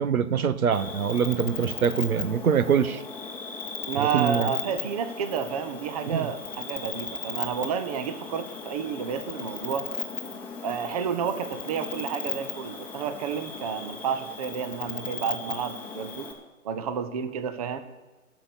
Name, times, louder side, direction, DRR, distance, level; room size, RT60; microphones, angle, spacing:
voice 1, 0.0-3.0 4.0-4.5 6.1-6.3, right 7 dB, 80° right, 15 dB, 0.8 m, -24 dB
Cricket, 0.7-16.3, left 5 dB, 5° left, 1.0 m, -36 dB
voice 2, 3.9-9.9 10.6-16.3 16.6-17.8, right 7 dB, 25° right, 11 dB, 0.6 m, -30 dB
12.5 x 6.3 x 8.3 m, 1.2 s
figure-of-eight pair, 135°, 42 cm